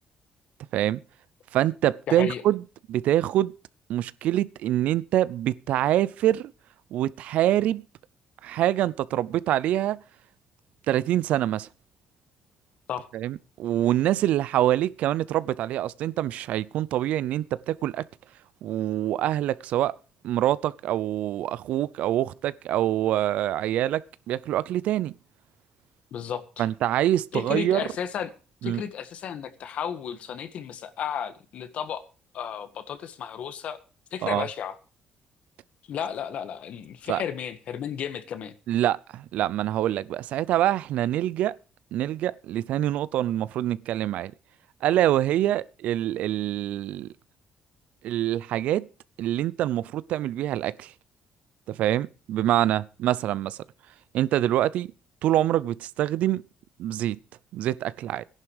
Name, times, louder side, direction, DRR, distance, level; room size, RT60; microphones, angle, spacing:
voice 1, 1.5-3.5 3.9-6.5 6.9-7.8 8.4-10.0 10.9-11.7 13.1-18.0 18.6-19.9 20.2-24.0 24.3-25.1 26.6-27.8 28.6-28.8 34.2-34.5 37.1-37.2 38.7-41.5 41.9-44.3 44.8-47.1 48.0-48.9 49.2-50.9 51.7-53.6 54.1-54.9 55.2-56.4 56.8-57.2 57.5-58.2, right 13 dB, 80° right, 0.6 m, -25 dB
voice 2, 2.1-2.4 12.9-13.1 26.1-26.7 27.3-28.3 28.6-32.0 32.3-33.8 34.1-34.7 35.9-38.5, left 8 dB, 65° left, 1.6 m, -33 dB
14.5 x 11.0 x 4.9 m
cardioid pair, 95°, 2 cm